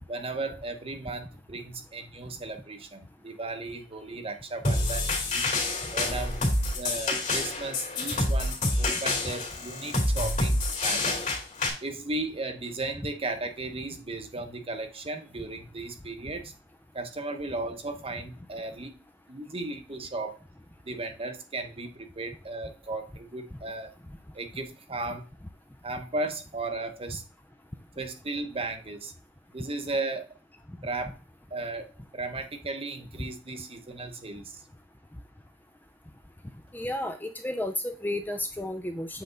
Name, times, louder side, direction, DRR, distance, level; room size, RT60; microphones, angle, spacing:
voice 1, 0.1-5.5 5.9-6.4 6.8-11.2 11.8-16.5 16.9-19.0 19.3-20.4 20.8-23.9 24.3-25.3 25.8-27.2 28.0-29.1 29.5-30.3 30.8-31.2 31.5-34.6, right 2 dB, 30° right, 7 dB, 0.9 m, -35 dB
sound 1, 4.6-11.7, left 2 dB, 45° left, 2.3 m, -27 dB
voice 2, 36.7-39.2, left 1 dB, 10° left, 6 dB, 0.5 m, -32 dB
7.9 x 3.4 x 3.7 m, 0.33 s
head